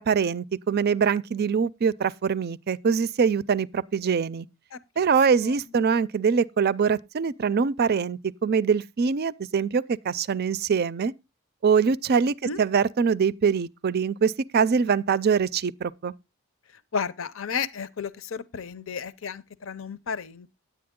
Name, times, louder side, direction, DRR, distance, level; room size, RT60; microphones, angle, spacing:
voice 1, 0.0-4.5 5.0-11.1 11.6-16.1, right 6 dB, 50° right, 0.4 m, -23 dB
voice 2, 16.9-20.5, left 6 dB, 70° left, 0.7 m, -33 dB
10.5 x 8.6 x 3.6 m
head